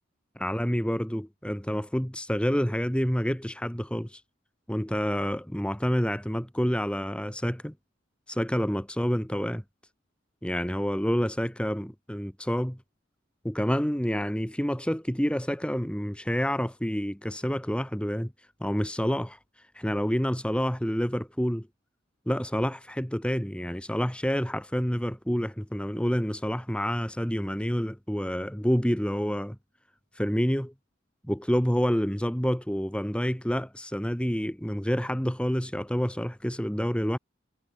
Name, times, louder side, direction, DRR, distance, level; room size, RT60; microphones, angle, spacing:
voice 1, 0.4-4.2 4.7-7.7 8.3-9.6 10.4-12.8 13.4-18.3 18.6-19.4 19.8-21.7 22.3-29.6 30.2-30.7 31.3-37.2, equal, 5° left, 2.0 m, -28 dB
head